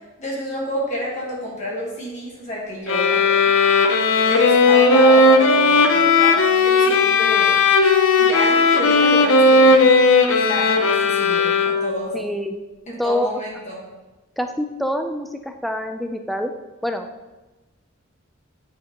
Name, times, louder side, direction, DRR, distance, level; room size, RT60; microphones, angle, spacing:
voice 1, 0.2-3.3 4.3-7.6 8.2-9.9 10.3-12.2 12.9-13.8, left 1 dB, 35° left, -4 dB, 1.4 m, -29 dB
sound 1, 2.9-12.1, left 3 dB, 80° left, 0.6 m, -16 dB
voice 2, 12.1-12.6 13.0-13.3 14.4-16.5 16.8-17.1, equal, ahead, 6 dB, 0.4 m, -25 dB
9.5 x 5.1 x 2.9 m, 1.1 s
head